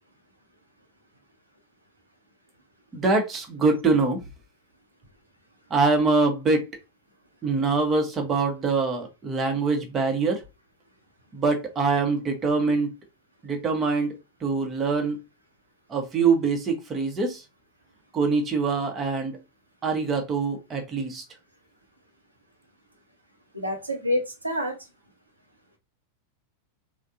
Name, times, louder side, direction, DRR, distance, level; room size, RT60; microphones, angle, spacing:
voice 1, 2.9-4.2 5.7-6.7 7.4-10.4 11.3-12.9 13.4-15.2 15.9-17.4 18.1-19.4 19.8-21.2, right 4 dB, 20° right, 0.9 m, -24 dB
voice 2, 23.5-24.8, left 1 dB, 85° right, 0.9 m, -27 dB
3.4 x 2.3 x 2.7 m
figure-of-eight pair, 90°, 0 cm